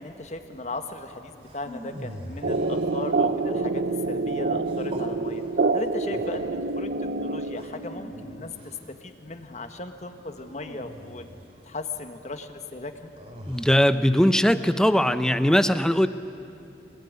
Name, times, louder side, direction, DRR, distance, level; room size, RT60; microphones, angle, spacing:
voice 1, 0.0-5.4 5.7-11.2 11.6-13.1, left 2 dB, 40° left, 7 dB, 1.5 m, -37 dB
sound 1, 1.4-3.4 4.6-5.1 5.8-6.5 7.5-8.9 10.4-11.6 13.2-13.9, equal, 35° right, 2.7 m, -41 dB
sound 2, 2.4-8.0, right 3 dB, 55° right, 0.7 m, -27 dB
voice 2, 13.5-16.1, equal, 5° left, 11 dB, 0.6 m, -20 dB
25.5 x 19.5 x 9.7 m, 2.7 s
head